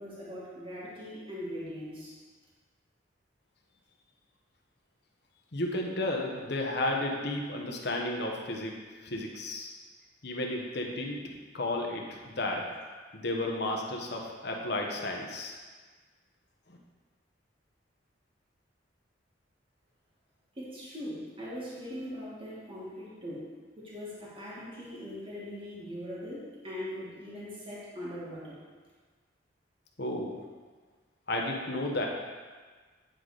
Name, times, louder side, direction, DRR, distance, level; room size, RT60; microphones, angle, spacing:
voice 1, 0.0-2.2 20.6-23.5 23.8-28.6, equal, 30° right, -7 dB, 2.0 m, -41 dB
voice 2, 5.5-9.7 10.2-12.6 13.1-15.6 30.0-30.4 31.3-32.1, left 1 dB, 65° left, 0 dB, 1.1 m, -33 dB
9.5 x 4.0 x 4.9 m, 1.4 s
head